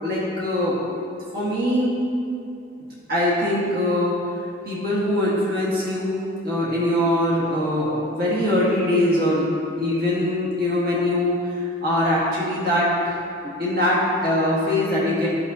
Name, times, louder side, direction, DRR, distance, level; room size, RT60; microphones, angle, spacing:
voice 1, 0.0-0.8 1.3-2.0 3.1-4.1 4.6-6.2 6.4-9.5 9.8-15.3, left 1 dB, 55° right, -7 dB, 1.5 m, -22 dB
10.5 x 6.0 x 2.7 m, 2.5 s
head